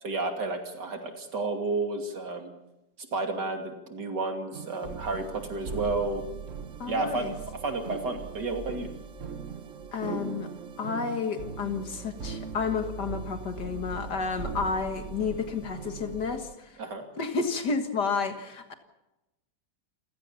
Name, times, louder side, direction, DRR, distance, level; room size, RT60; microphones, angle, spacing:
voice 1, 0.0-2.5 3.1-6.2 6.9-7.3 7.5-8.9 16.8-17.0, right 3 dB, 85° right, 5 dB, 3.3 m, -31 dB
sound 1, 4.5-16.5, right 6 dB, 50° right, 1.5 m, -40 dB
voice 2, 6.8-7.3 9.9-10.5 10.8-16.8 17.2-18.7, left 5 dB, 80° left, 7 dB, 2.2 m, -31 dB
sound 2, 8.0-10.9, right 1 dB, 30° right, 5.5 m, -49 dB
28.0 x 16.5 x 7.1 m, 0.97 s
omnidirectional pair, 1.8 m